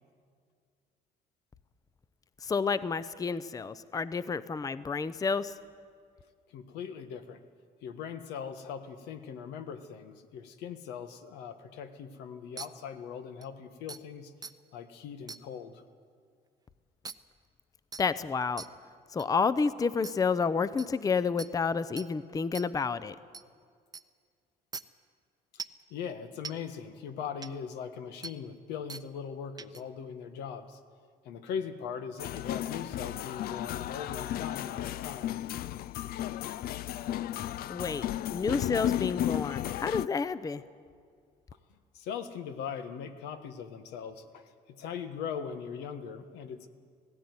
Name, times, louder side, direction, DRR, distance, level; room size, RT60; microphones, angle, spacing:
voice 1, 2.4-5.5 18.0-18.6 19.1-23.2 37.7-40.6, left 5 dB, 20° left, 15 dB, 0.6 m, -30 dB
voice 2, 6.5-7.4 7.8-14.3 14.7-15.8 25.9-30.8 31.2-35.4 41.9-46.7, left 7 dB, 90° left, 8 dB, 1.5 m, -40 dB
sound 1, 12.6-12.7 13.4-13.5 13.9-14.0 14.4-14.5 15.3-15.4 17.0-17.1 17.9-18.0 18.6-18.7 19.2-19.3 20.0-20.1 20.8-20.9 21.4-21.5 22.0-22.1 22.5-22.7 23.3-23.4 23.9-24.0 24.7-24.8 25.6-25.8 26.4-26.5 27.4-27.5 28.2-28.3 28.9-29.0 29.6-29.8, right 5 dB, 25° right, 0.7 m, -41 dB
sound 2, 32.2-40.1, left 12 dB, 65° left, 0.4 m, -34 dB
18.0 x 16.5 x 9.7 m, 2.1 s
cardioid pair, 110°, 17 cm